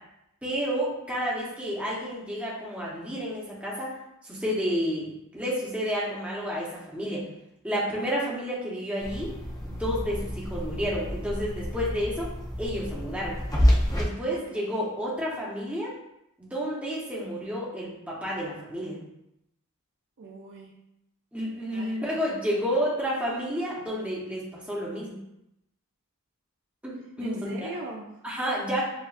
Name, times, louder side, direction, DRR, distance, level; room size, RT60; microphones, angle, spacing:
voice 1, 0.4-3.9 4.2-7.2 7.6-9.3 9.6-12.3 12.6-13.4 13.9-15.9 16.4-19.0 21.3-25.2 26.8-27.7 28.2-28.8, equal, 5° right, -6 dB, 1.1 m, -30 dB
sound 1, 9.0-14.0, equal, 15° left, 0.6 m, -28 dB
voice 2, 14.3-14.9 20.2-20.8 21.7-22.7 27.2-28.1, right 3 dB, 55° right, 0 dB, 0.5 m, -41 dB
7.0 x 2.5 x 2.5 m, 0.85 s
head